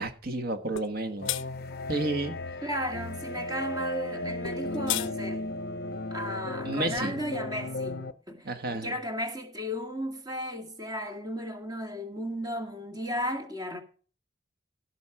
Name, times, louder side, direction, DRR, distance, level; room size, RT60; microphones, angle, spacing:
voice 1, 0.0-1.4 1.9-2.3 6.6-7.2 8.4-8.9, right 2 dB, 45° right, 1.6 m, -31 dB
sound 1, 0.8-0.9 1.3-1.4 4.4-5.1, left 14 dB, 65° left, 0.5 m, -31 dB
sound 2, 1.2-8.1, left 2 dB, 45° left, 0.8 m, -35 dB
voice 2, 2.6-5.5 6.1-13.8, equal, 20° right, 2.1 m, -35 dB
17.0 x 6.2 x 4.9 m
head